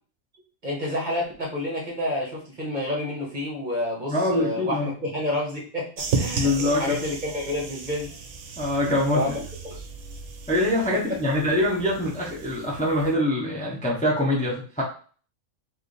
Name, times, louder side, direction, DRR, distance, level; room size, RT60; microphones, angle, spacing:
voice 1, 0.6-8.1 9.1-9.8 10.9-11.4, left 1 dB, 35° right, -2 dB, 1.3 m, -29 dB
voice 2, 4.1-4.9 6.3-7.0 8.6-9.3 10.5-14.8, left 1 dB, 5° left, -3 dB, 0.8 m, -24 dB
sound 1, 6.0-13.1, right 5 dB, 65° right, 1.0 m, -34 dB
4.8 x 2.7 x 3.2 m, 0.40 s
omnidirectional pair, 1.4 m